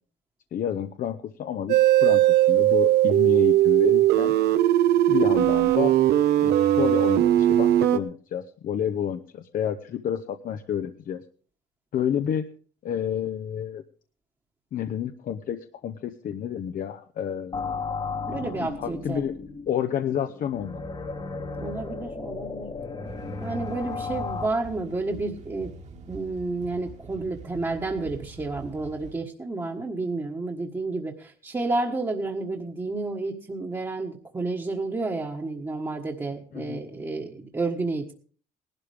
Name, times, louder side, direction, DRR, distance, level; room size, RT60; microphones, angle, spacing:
voice 1, 0.5-4.3 5.1-6.0 6.4-11.2 11.9-12.5 12.8-13.8 14.7-17.9 18.8-19.4 19.7-20.9 36.5-36.8, left 9 dB, 55° left, 8 dB, 0.9 m, -29 dB
sound 1, 1.7-8.0, right 13 dB, 75° right, 1.1 m, -19 dB
sound 2, 17.5-24.5, left 4 dB, 30° left, 1.4 m, -34 dB
voice 2, 18.3-19.2 21.6-22.7 23.4-25.7 26.1-38.1, right 3 dB, 20° right, -2 dB, 1.5 m, -30 dB
sound 3, 23.0-29.1, right 4 dB, 45° right, 1.9 m, -44 dB
18.5 x 12.0 x 3.5 m, 0.42 s
cardioid pair, 110°, 17 cm